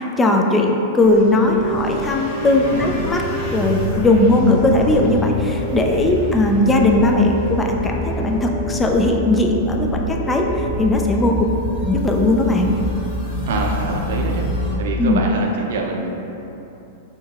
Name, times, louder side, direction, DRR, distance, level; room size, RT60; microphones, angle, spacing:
voice 1, 0.0-3.2 3.5-11.4 11.8-12.7 15.0-15.2, left 2 dB, 15° left, 1 dB, 0.4 m, -18 dB
sound 1, 1.0-14.8, equal, 45° left, 1.1 m, -26 dB
voice 2, 13.5-14.5 14.8-16.1, right 3 dB, 65° right, 0 dB, 0.5 m, -25 dB
6.1 x 2.6 x 2.3 m, 2.9 s
hypercardioid pair, 100°, 0 cm